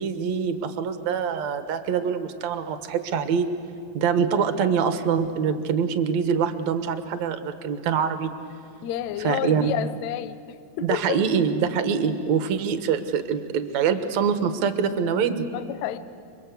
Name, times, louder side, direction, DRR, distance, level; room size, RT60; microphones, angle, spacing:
voice 1, 0.0-3.5 3.9-8.3 9.2-9.9 10.8-15.5, right 7 dB, 60° right, 9 dB, 2.1 m, -24 dB
voice 2, 8.8-11.2 15.5-16.0, left 12 dB, 75° left, 12 dB, 1.7 m, -30 dB
29.5 x 23.0 x 8.2 m, 2.3 s
omnidirectional pair, 4.4 m